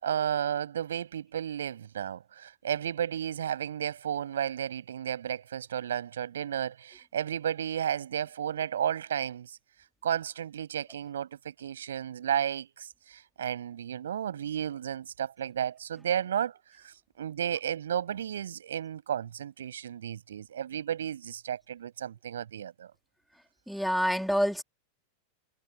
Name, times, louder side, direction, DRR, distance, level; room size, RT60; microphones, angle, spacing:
voice 1, 0.0-9.6 10.0-16.5 16.8-22.9, right 9 dB, 65° right, 7.0 m, -33 dB
voice 2, 23.7-24.6, equal, ahead, 4.0 m, -27 dB
figure-of-eight pair, 90°, 0 cm